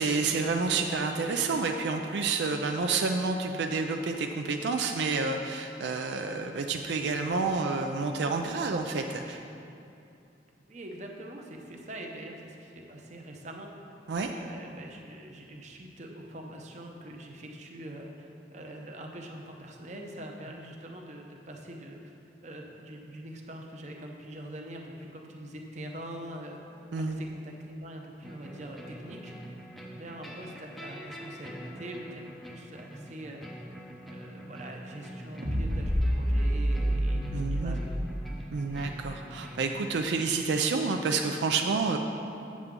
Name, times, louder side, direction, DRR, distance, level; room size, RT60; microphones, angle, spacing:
voice 1, 0.0-9.4 14.1-14.3 26.9-27.2 37.3-37.8 38.5-42.0, right 4 dB, 80° right, 4 dB, 0.4 m, -29 dB
voice 2, 10.7-13.7 14.3-22.1 22.4-26.6 27.0-29.3 29.9-33.5 34.1-37.9, right 1 dB, 40° right, 1 dB, 0.7 m, -44 dB
sound 1, 28.2-39.7, equal, ahead, 0.5 m, -44 dB
sound 2, 35.4-38.8, equal, 60° right, 1.1 m, -28 dB
7.9 x 7.3 x 3.7 m, 2.6 s
head